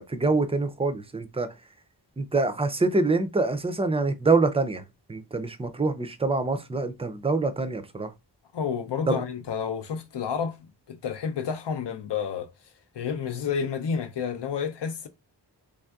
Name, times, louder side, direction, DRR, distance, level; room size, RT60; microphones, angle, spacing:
voice 1, 0.0-1.5 2.2-8.1 9.1-9.2, right 3 dB, 15° right, 0.4 m, -25 dB
voice 2, 8.5-10.6 10.9-12.5 12.9-15.1, left 6 dB, 75° left, 0.6 m, -30 dB
3.5 x 2.5 x 2.3 m
wide cardioid pair, 65°, 42 cm